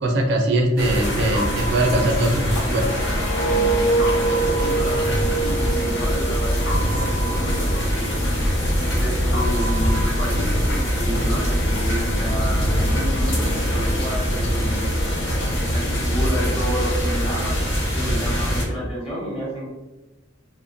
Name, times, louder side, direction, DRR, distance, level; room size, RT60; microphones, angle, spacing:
voice 1, 0.0-2.8, right 1 dB, 60° right, 2 dB, 0.4 m, -21 dB
sound 1, 0.8-18.6, equal, 80° left, 1.1 m, -23 dB
sound 2, 1.3-3.4 4.0-6.1 6.7-9.0 9.3-11.4, right 1 dB, 65° left, 0.7 m, -32 dB
sound 3, 2.4-7.5 7.8-8.1, right 3 dB, 45° left, 0.3 m, -25 dB
voice 2, 4.5-8.1 8.9-14.9 15.7-19.7, equal, 30° left, -4 dB, 0.9 m, -31 dB
2.7 x 2.1 x 2.5 m, 1.0 s
head